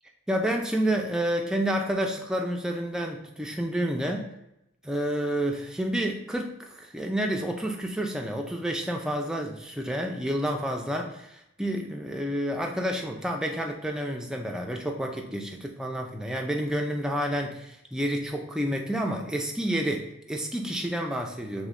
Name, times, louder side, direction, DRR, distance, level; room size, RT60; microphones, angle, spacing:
voice 1, 0.3-4.3 4.8-21.7, equal, 5° right, 2 dB, 0.3 m, -29 dB
3.4 x 3.1 x 3.7 m, 0.86 s
head